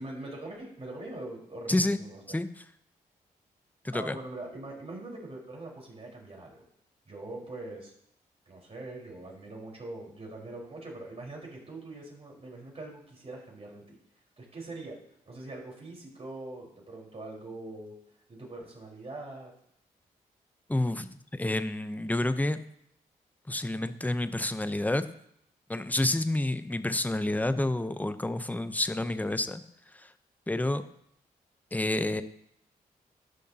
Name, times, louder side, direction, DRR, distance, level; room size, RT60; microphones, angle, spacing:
voice 1, 0.0-2.4 3.9-6.6 7.1-7.9 8.5-14.0 14.4-18.0 18.3-19.5, right 2 dB, 40° right, -2 dB, 4.6 m, -42 dB
voice 2, 3.8-4.2 20.7-22.6 23.5-25.1 25.7-29.6 29.9-30.1 30.5-30.8 31.7-32.2, left 1 dB, 10° left, 11 dB, 0.8 m, -29 dB
19.0 x 6.4 x 2.9 m, 0.74 s
supercardioid pair, 50°, 16 cm